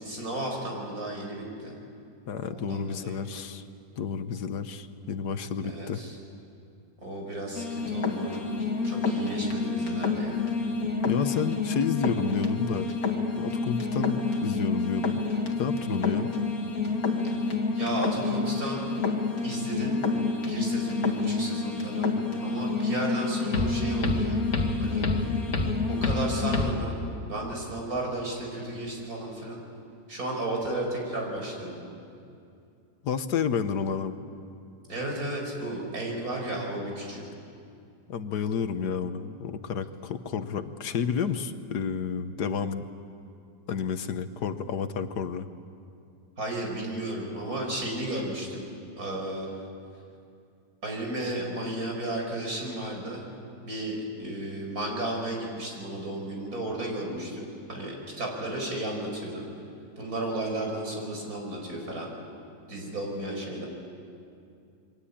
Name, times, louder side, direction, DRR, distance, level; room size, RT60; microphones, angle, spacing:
voice 1, 0.0-1.7 2.5-3.2 5.6-6.1 7.0-8.5 8.9-10.5 17.7-18.8 19.4-20.0 20.4-22.1 22.4-24.4 24.8-25.1 25.9-27.0 27.3-29.6 30.1-31.8 34.9-37.3 46.4-48.7 49.0-49.5 50.8-53.3 53.6-59.4 60.0-62.1 62.7-63.7, right 1 dB, 60° right, 0 dB, 5.8 m, -33 dB
voice 2, 2.3-3.6 4.0-6.0 11.0-12.9 13.4-15.2 15.6-16.3 33.0-34.2 38.1-42.8 43.7-45.5, left 6 dB, 75° left, 10 dB, 1.6 m, -30 dB
sound 1, 7.5-26.7, left 3 dB, 60° left, 2.5 m, -28 dB
28.5 x 23.0 x 8.6 m, 2.5 s
omnidirectional pair, 1.8 m